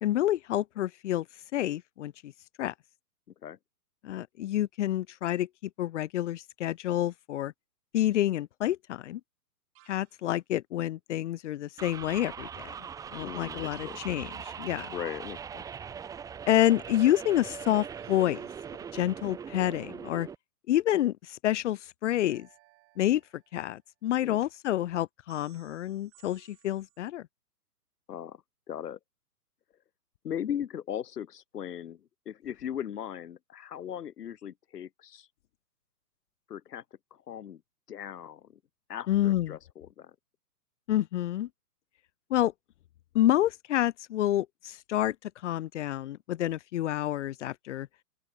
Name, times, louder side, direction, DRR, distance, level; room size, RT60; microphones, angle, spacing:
voice 1, 0.0-1.3 1.5-2.3 2.6-2.7 4.0-5.5 5.8-7.5 7.9-9.2 9.9-12.7 13.1-14.9 16.5-18.5 18.9-20.3 20.7-22.5 23.0-23.2 23.5-27.2 39.1-39.6 40.9-41.5 42.3-42.5 43.1-47.9, left 13 dB, 50° left, 0.9 m, -28 dB
sound 1, 9.7-10.3 13.5-15.2 17.9-19.3 22.3-23.8 25.3-27.0, right 22 dB, 30° right, 5.2 m, -63 dB
sound 2, 11.8-20.4, right 7 dB, 5° right, 0.9 m, -41 dB
voice 2, 13.2-14.0 14.9-15.6 24.2-24.4 28.1-28.4 28.7-29.0 30.2-35.3 36.5-36.8 37.1-37.6 37.9-38.5 38.9-40.1, left 9 dB, 80° left, 1.2 m, -38 dB
open air
hypercardioid pair, 135°, 47 cm